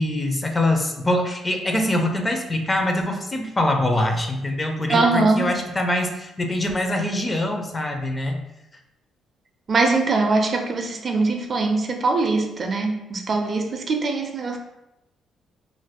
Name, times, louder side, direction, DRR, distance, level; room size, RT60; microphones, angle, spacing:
voice 1, 0.0-8.4, left 1 dB, 25° left, 3 dB, 0.4 m, -24 dB
voice 2, 4.9-5.6 9.7-14.6, right 3 dB, 45° right, 3 dB, 0.4 m, -22 dB
2.5 x 2.2 x 3.4 m, 0.92 s
cardioid pair, 90°, 0 cm